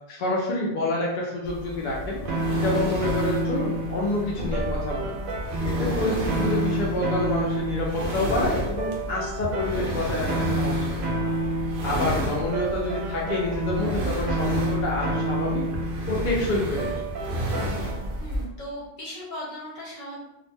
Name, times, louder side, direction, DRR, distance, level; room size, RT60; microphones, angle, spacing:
voice 1, 0.1-2.2 2.6-5.1 5.6-11.0 11.8-15.6 16.1-16.9, left 2 dB, 60° left, -4 dB, 0.5 m, -28 dB
sound 1, 1.4-18.4, equal, 55° right, 0.7 m, -32 dB
sound 2, 2.3-18.2, right 1 dB, 80° right, 0.9 m, -30 dB
voice 2, 18.2-20.2, equal, 40° left, -6 dB, 1.1 m, -38 dB
2.4 x 2.1 x 3.2 m, 0.91 s
omnidirectional pair, 1.3 m